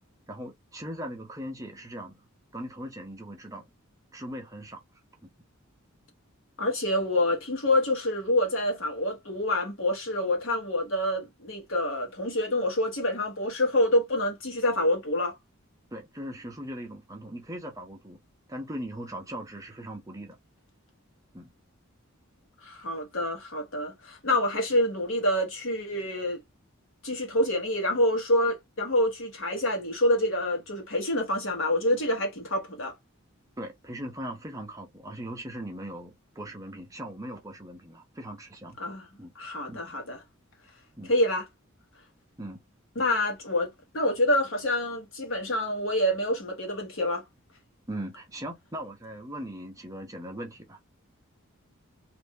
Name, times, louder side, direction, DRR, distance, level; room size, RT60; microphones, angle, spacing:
voice 1, 0.3-2.2 2.5-3.6 4.1-4.8 5.2-5.3 15.9-18.2 18.5-20.4 21.3-21.5 33.6-38.8 39.2-39.3 39.7-39.8 41.0-41.1 42.4-42.6 47.9-50.9, right 1 dB, 15° right, 0.6 m, -39 dB
voice 2, 6.6-15.3 22.6-26.4 27.0-32.9 38.8-39.1 39.4-40.2 41.1-41.5 43.0-47.2, left 1 dB, 65° left, 1.2 m, -27 dB
2.5 x 2.4 x 3.6 m
head